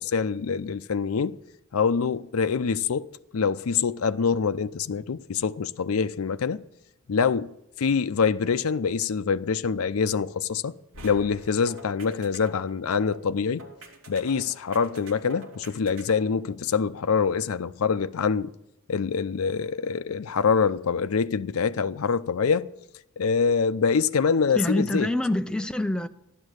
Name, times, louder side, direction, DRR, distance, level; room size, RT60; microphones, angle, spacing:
voice 1, 0.0-1.4 1.7-6.6 7.1-7.5 7.8-10.7 11.0-13.7 14.1-18.5 18.9-22.7 23.2-25.1, left 5 dB, 90° left, 0.5 m, -25 dB
sound 1, 10.9-16.4, right 1 dB, 75° right, 2.9 m, -45 dB
voice 2, 24.6-26.1, left 1 dB, 5° left, 0.6 m, -26 dB
14.5 x 11.5 x 6.4 m
head